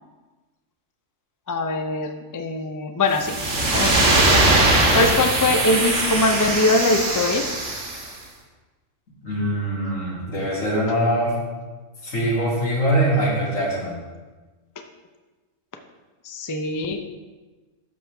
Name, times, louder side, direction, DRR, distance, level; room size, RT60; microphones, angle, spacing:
voice 1, 1.5-3.4 3.7-4.4 4.9-7.4 16.2-17.0, left 2 dB, 25° left, 5 dB, 0.4 m, -22 dB
sound 1, 3.1-8.1, right 2 dB, 65° right, 1.7 m, -20 dB
voice 2, 9.2-11.3 12.0-14.0, right 1 dB, 85° left, -6 dB, 3.1 m, -23 dB
12.5 x 6.3 x 3.5 m, 1.2 s
omnidirectional pair, 1.4 m